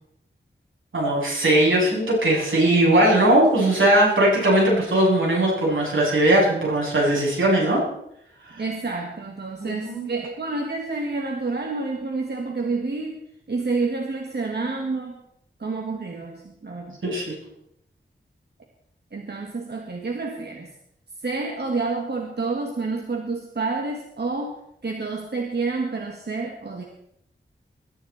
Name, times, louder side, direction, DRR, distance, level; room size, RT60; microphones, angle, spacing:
voice 1, 0.9-7.8 9.6-10.1 17.0-17.3, right 1 dB, 80° right, -3 dB, 7.9 m, -19 dB
voice 2, 8.6-13.2 13.5-15.2 15.6-17.0 19.1-20.7 21.2-26.8, right 3 dB, 55° right, 2 dB, 2.1 m, -29 dB
21.5 x 13.5 x 4.4 m, 0.74 s
wide cardioid pair, 105°, 20 cm